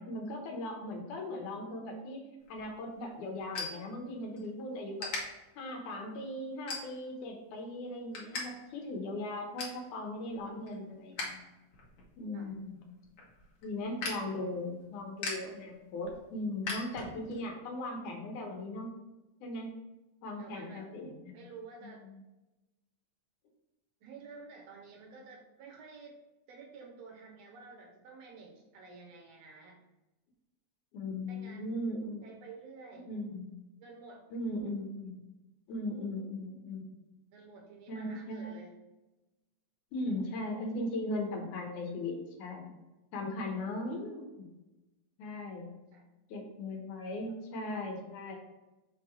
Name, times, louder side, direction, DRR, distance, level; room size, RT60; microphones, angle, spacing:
voice 1, 0.0-2.2 2.5-5.1 5.6-11.5 12.2-12.8 13.6-18.9 19.4-19.8 20.2-21.4 22.0-22.2 30.9-32.3 33.1-33.5 34.3-35.2 35.7-37.0 37.9-38.5 39.9-42.7 43.1-44.5 45.2-45.7 46.3-48.4, left 1 dB, 85° left, 2 dB, 2.5 m, -38 dB
sound 1, 2.4-4.5 5.0-5.2 5.8-6.0 6.7-7.2 7.6-8.4 8.7-8.8 9.2-9.8 10.3-11.4 11.7-17.4, left 3 dB, 55° left, 2.1 m, -41 dB
voice 2, 20.4-20.9 21.3-22.1 24.0-26.2 26.5-29.9 31.3-31.7 32.2-33.1 33.8-34.2 37.3-38.8 45.9-46.1, right 4 dB, 70° right, 1 dB, 1.8 m, -51 dB
5.9 x 3.7 x 4.5 m, 1.0 s
omnidirectional pair, 3.4 m